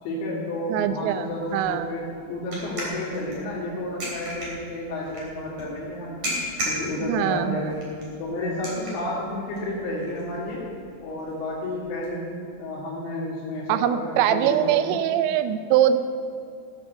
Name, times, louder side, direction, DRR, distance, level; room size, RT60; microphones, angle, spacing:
voice 1, 0.0-6.2 6.6-7.8 8.2-10.7 11.0-15.0, left 1 dB, 75° left, -7 dB, 4.3 m, -31 dB
voice 2, 0.7-1.9 7.0-7.6 13.7-16.0, right 10 dB, 80° right, 11 dB, 2.9 m, -23 dB
sound 1, 0.8-12.1, equal, 40° right, 4.0 m, -37 dB
16.0 x 7.3 x 6.8 m, 2.5 s
omnidirectional pair, 5.3 m